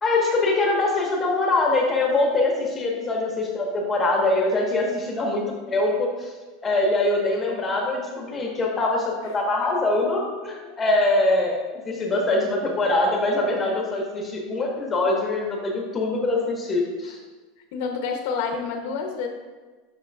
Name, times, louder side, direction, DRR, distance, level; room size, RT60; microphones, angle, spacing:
voice 1, 0.0-6.3 6.6-11.6 11.8-17.2, left 2 dB, 15° left, -1 dB, 1.3 m, -23 dB
voice 2, 17.7-19.3, left 5 dB, 65° left, 3 dB, 0.8 m, -29 dB
7.6 x 6.1 x 2.4 m, 1.3 s
supercardioid pair, 155°, 0 cm